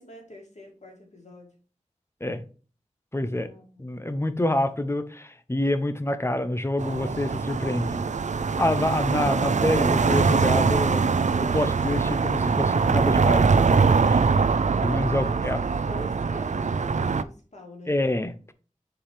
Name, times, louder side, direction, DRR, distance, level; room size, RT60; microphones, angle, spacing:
voice 1, 0.0-1.5 3.4-3.9 15.0-18.0, left 1 dB, 65° left, 2.5 m, -45 dB
voice 2, 3.1-3.5 3.8-8.0 8.6-11.0 11.4-14.2 14.8-15.6 17.9-18.5, left 1 dB, 20° left, 0.8 m, -27 dB
sound 1, 6.8-17.2, right 5 dB, 70° right, 0.4 m, -23 dB
7.1 x 4.7 x 3.4 m
wide cardioid pair, 70°, 13 cm